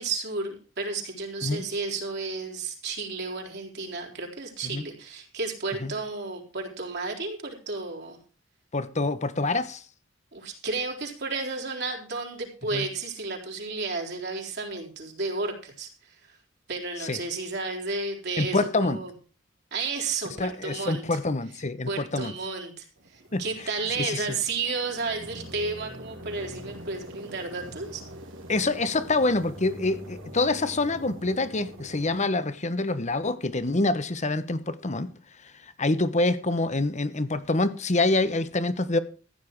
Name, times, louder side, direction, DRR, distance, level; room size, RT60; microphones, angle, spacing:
voice 1, 0.0-8.2 10.3-16.4 16.7-19.1 19.7-21.2 21.9-28.0, right 3 dB, 55° right, 4.2 m, -32 dB
voice 2, 8.7-9.8 12.7-12.9 17.0-17.2 18.4-19.0 20.4-22.3 23.3-23.4 24.0-24.3 28.5-35.1 35.8-39.0, left 2 dB, 35° left, 1.2 m, -26 dB
sound 1, 23.0-32.2, equal, 75° right, 3.1 m, -44 dB
15.0 x 9.5 x 4.7 m
head